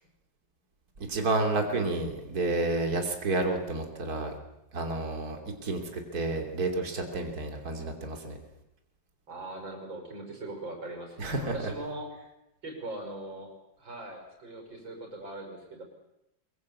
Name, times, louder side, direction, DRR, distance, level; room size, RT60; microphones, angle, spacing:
voice 1, 1.0-4.3 4.7-5.8 6.1-8.3 11.2-11.7, right 2 dB, 50° right, 3 dB, 3.5 m, -30 dB
voice 2, 9.3-12.1 12.6-13.5 13.8-15.8, right 2 dB, 85° right, 3 dB, 6.2 m, -40 dB
24.0 x 22.5 x 8.5 m, 0.87 s
omnidirectional pair, 2.0 m